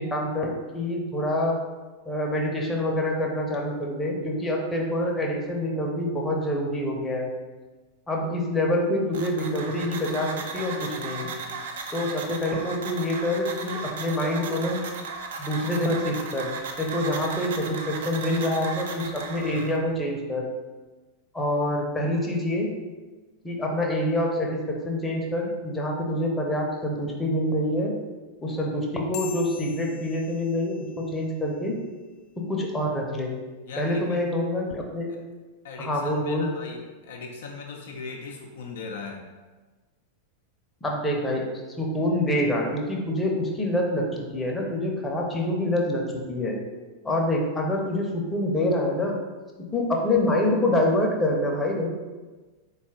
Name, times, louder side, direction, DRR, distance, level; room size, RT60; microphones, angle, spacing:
voice 1, 0.0-1.6 2.1-7.3 8.1-11.5 11.9-14.8 15.4-20.5 21.3-22.7 23.4-27.9 28.4-31.8 32.5-33.3 33.8-35.1 35.8-36.5 40.8-41.4 41.8-46.6 47.0-49.2 49.7-51.9, left 1 dB, 10° left, -1 dB, 0.7 m, -26 dB
sound 1, 9.1-19.8, right 4 dB, 60° right, 0.4 m, -36 dB
sound 2, 29.1-32.0, left 9 dB, 40° left, 0.9 m, -43 dB
voice 2, 33.7-34.2 35.6-39.2, left 4 dB, 60° left, 1 dB, 0.4 m, -39 dB
4.2 x 2.4 x 3.5 m, 1.3 s
figure-of-eight pair, 90°, 0 cm